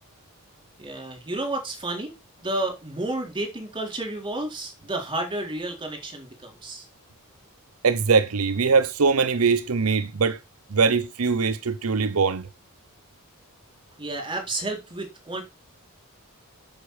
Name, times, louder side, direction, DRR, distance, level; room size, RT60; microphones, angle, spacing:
voice 1, 0.8-2.1 2.4-6.9 14.0-15.4, right 2 dB, 25° right, 4.0 m, -31 dB
voice 2, 7.8-10.4 10.7-12.5, right 5 dB, 80° right, 0.7 m, -22 dB
7.9 x 7.4 x 5.0 m
head